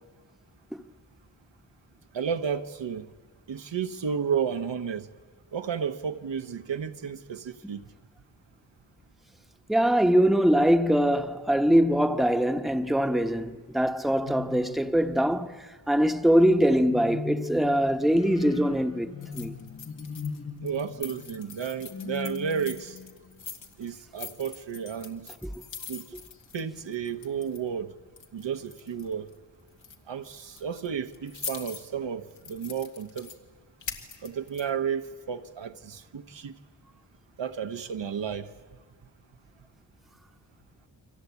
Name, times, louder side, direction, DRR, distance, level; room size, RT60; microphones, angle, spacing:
voice 1, 2.1-3.1 3.5-5.1 5.5-7.9 20.6-23.0 23.8-25.3 25.9-26.1 26.5-27.9 28.3-29.3 30.1-33.3 34.2-36.5 37.4-38.5, right 7 dB, 70° right, 1.2 m, -32 dB
voice 2, 9.7-19.6 25.4-25.5, equal, ahead, 1.1 m, -23 dB
sound 1, 14.2-15.3 16.9-23.4, left 5 dB, 30° left, 1.2 m, -39 dB
sound 2, 19.2-20.4 20.7-27.8 28.2-29.4 29.7-30.0 30.4-31.9 32.3-33.4 33.8-34.7, left 5 dB, 85° left, 2.3 m, -43 dB
29.5 x 24.0 x 8.3 m
cardioid pair, 70°, 45 cm